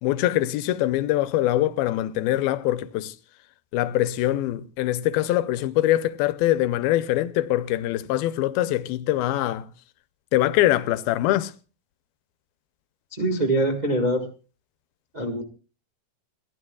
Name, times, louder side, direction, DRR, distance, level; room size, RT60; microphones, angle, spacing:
voice 1, 0.0-3.1 3.7-9.7 10.3-11.5, left 14 dB, 85° left, 2.6 m, -23 dB
voice 2, 13.1-14.2 15.1-15.4, right 1 dB, 75° right, 0.4 m, -23 dB
29.5 x 12.5 x 2.3 m
omnidirectional pair, 4.2 m